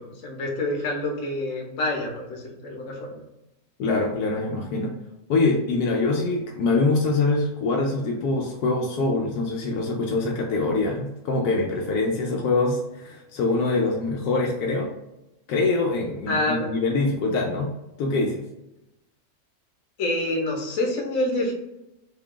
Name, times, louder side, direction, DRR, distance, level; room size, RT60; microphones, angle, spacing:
voice 1, 0.0-3.2 16.3-16.7 20.0-21.5, left 1 dB, 60° left, 0 dB, 1.2 m, -27 dB
voice 2, 3.8-4.9 5.3-14.9 15.5-17.7 18.0-18.4, left 3 dB, 80° left, 0 dB, 1.1 m, -24 dB
3.6 x 2.3 x 3.7 m, 0.92 s
omnidirectional pair, 1.6 m